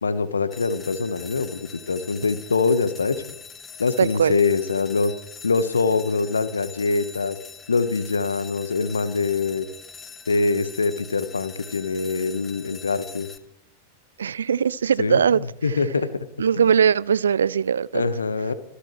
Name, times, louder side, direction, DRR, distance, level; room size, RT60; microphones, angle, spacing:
voice 1, 0.0-3.2 3.8-5.1 5.4-7.4 7.7-9.7 10.3-13.3 15.0-16.1 16.6-16.7 17.9-18.5, left 4 dB, 75° left, 1.2 m, -24 dB
sound 1, 0.5-13.4, left 5 dB, 15° left, 1.1 m, -43 dB
voice 2, 4.0-4.4 14.2-15.5 16.4-18.0, right 7 dB, 70° right, 0.4 m, -20 dB
26.0 x 13.0 x 3.2 m
figure-of-eight pair, 90°, 0 cm